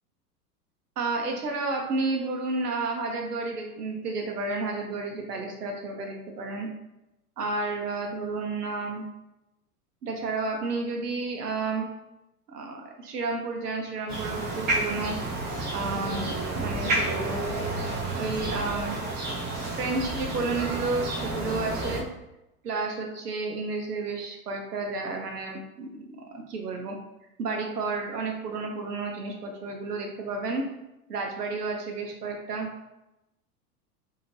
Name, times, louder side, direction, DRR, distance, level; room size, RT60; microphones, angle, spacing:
voice 1, 1.0-6.7 7.4-9.0 10.0-11.9 12.5-15.2 15.7-17.4 18.1-19.0 19.8-22.0 22.6-25.9 26.5-27.0 27.4-30.7 31.1-32.7, right 3 dB, 80° right, 2 dB, 0.7 m, -31 dB
sound 1, 14.1-22.0, right 2 dB, 25° right, 0.6 m, -30 dB
2.8 x 2.4 x 3.0 m, 0.92 s
figure-of-eight pair, 90°, 46 cm